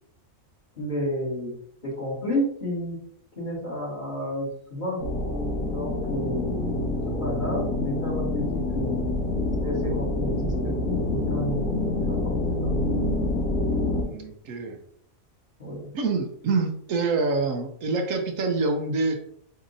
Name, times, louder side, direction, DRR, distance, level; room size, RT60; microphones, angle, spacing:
voice 1, 0.7-1.5 1.8-3.0 3.4-5.0 5.7-9.0 9.6-10.5 10.8-12.7 15.6-15.9, left 1 dB, 35° left, -7 dB, 2.3 m, -31 dB
sound 1, 5.0-14.0, left 2 dB, 80° left, 2.3 m, -27 dB
voice 2, 14.0-14.8 15.9-19.2, right 3 dB, 75° right, 4 dB, 1.0 m, -26 dB
6.5 x 2.8 x 2.6 m, 0.66 s
omnidirectional pair, 1.4 m